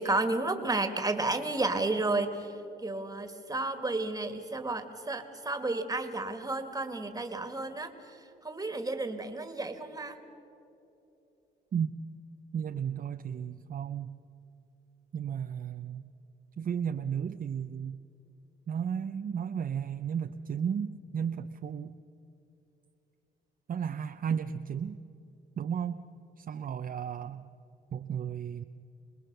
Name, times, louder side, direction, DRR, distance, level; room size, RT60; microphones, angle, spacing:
voice 1, 0.0-2.3 2.8-7.9 8.4-10.2, right 2 dB, 20° right, 7 dB, 2.1 m, -32 dB
voice 2, 12.5-14.1 15.1-16.1 16.6-18.0 18.7-21.9 23.7-25.0 25.6-26.0 26.4-27.5 27.9-28.6, right 7 dB, 45° right, 7 dB, 0.7 m, -34 dB
26.0 x 20.5 x 6.8 m, 2.9 s
cardioid pair, 90°, 20 cm